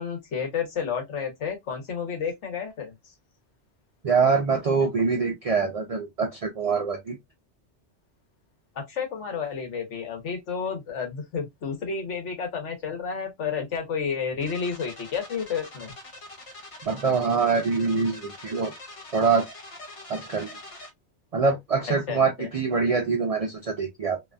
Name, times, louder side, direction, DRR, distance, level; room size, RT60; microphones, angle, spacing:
voice 1, 0.0-2.9 8.7-15.9 22.1-22.5, left 6 dB, 85° left, 1.3 m, -31 dB
voice 2, 4.0-7.2 16.9-18.7 19.1-19.5 20.1-20.5 21.3-24.2, right 5 dB, 65° right, 0.3 m, -24 dB
sound 1, 14.4-20.9, left 2 dB, 35° left, 0.6 m, -44 dB
2.7 x 2.3 x 2.3 m
omnidirectional pair, 1.2 m